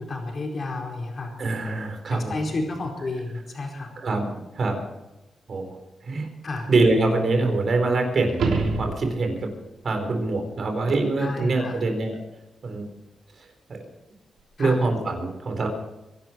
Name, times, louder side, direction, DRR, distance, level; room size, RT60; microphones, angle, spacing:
voice 1, 0.0-1.3 2.1-3.9 6.4-6.7 11.2-11.8 14.6-14.8, left 2 dB, 45° left, 1 dB, 4.5 m, -31 dB
voice 2, 1.4-2.4 4.0-4.8 5.5-5.8 6.0-6.3 6.7-8.4 8.8-9.5 9.8-12.2 12.6-12.9 13.7-13.8 14.6-15.7, right 3 dB, 50° right, 4 dB, 4.3 m, -24 dB
sound 1, 8.3-9.5 14.4-14.5, right 3 dB, 90° right, 3.4 m, -26 dB
24.5 x 12.0 x 4.6 m, 0.96 s
wide cardioid pair, 125°, 0 cm